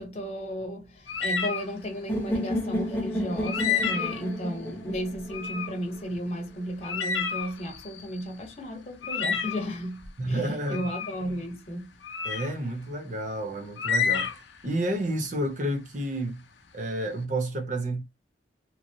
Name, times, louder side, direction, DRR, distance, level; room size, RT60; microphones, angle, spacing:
voice 1, 0.0-11.9, equal, 35° left, 1.0 m, -34 dB
sound 1, 1.1-1.7 3.4-4.3 5.3-5.7 6.1-6.2 6.8-8.2 9.0-9.7 10.7-11.2 12.0-12.5 13.8-14.6, left 6 dB, 75° left, 0.5 m, -29 dB
sound 2, 2.1-6.0, equal, 10° left, 0.7 m, -31 dB
voice 2, 10.2-10.9 12.2-16.4 16.7-18.0, right 1 dB, 40° right, 0.7 m, -30 dB
3.0 x 2.0 x 2.6 m
head